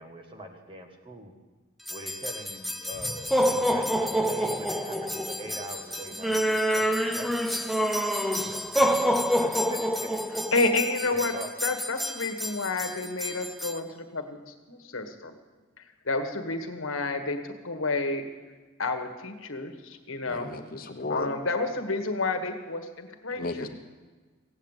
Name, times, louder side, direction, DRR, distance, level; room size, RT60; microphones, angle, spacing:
voice 1, 0.0-1.3 1.9-7.3 8.4-8.6 9.4-10.1 11.0-11.5, right 1 dB, 25° right, 4 dB, 1.7 m, -42 dB
sound 1, 1.9-13.8, equal, ahead, 0.7 m, -27 dB
voice 2, 10.5-14.4 14.7-15.3 16.0-18.3 18.8-20.5 21.1-23.7, left 3 dB, 80° left, 5 dB, 1.6 m, -30 dB
voice 3, 20.3-21.3 23.3-23.7, left 2 dB, 45° left, 6 dB, 1.1 m, -34 dB
16.0 x 8.2 x 9.0 m, 1.3 s
head